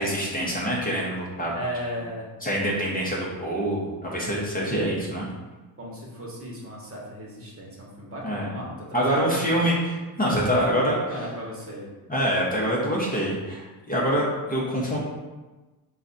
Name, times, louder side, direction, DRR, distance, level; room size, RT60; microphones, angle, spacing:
voice 1, 0.0-1.5 2.4-5.3 8.2-8.5 8.9-9.8 10.2-10.9 12.1-15.0, equal, 20° left, -4 dB, 0.9 m, -25 dB
voice 2, 1.5-2.3 5.8-9.6 10.5-11.9, equal, 35° right, -3 dB, 1.2 m, -35 dB
3.9 x 2.4 x 4.0 m, 1.2 s
cardioid pair, 85°, 42 cm